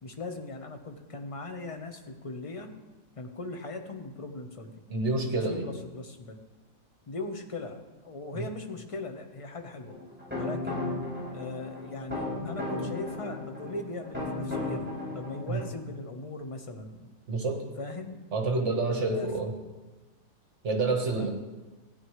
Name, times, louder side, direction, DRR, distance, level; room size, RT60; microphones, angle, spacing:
voice 1, 0.0-2.7 3.2-4.7 5.5-6.4 7.1-9.9 10.3-10.9 11.3-17.1 17.8-18.2 19.1-19.3 21.2-21.3, left 2 dB, 25° left, 5 dB, 0.9 m, -39 dB
voice 2, 4.9-5.7 15.5-15.6 17.3-17.6 18.3-19.5 20.6-21.3, right 3 dB, 55° right, 3 dB, 1.6 m, -28 dB
sound 1, 9.9-15.7, left 2 dB, 5° right, 4.6 m, -35 dB
16.0 x 9.9 x 3.2 m, 1.1 s
omnidirectional pair, 1.4 m